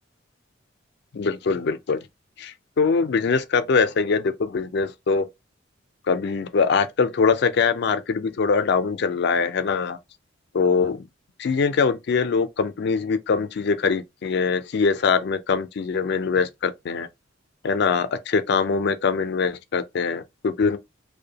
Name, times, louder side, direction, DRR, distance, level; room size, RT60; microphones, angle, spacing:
voice 1, 1.1-2.0 2.4-5.3 6.1-10.0 10.5-11.0 11.4-17.1 17.6-20.8, left 5 dB, 60° left, 0.4 m, -23 dB
2.7 x 2.1 x 2.8 m
head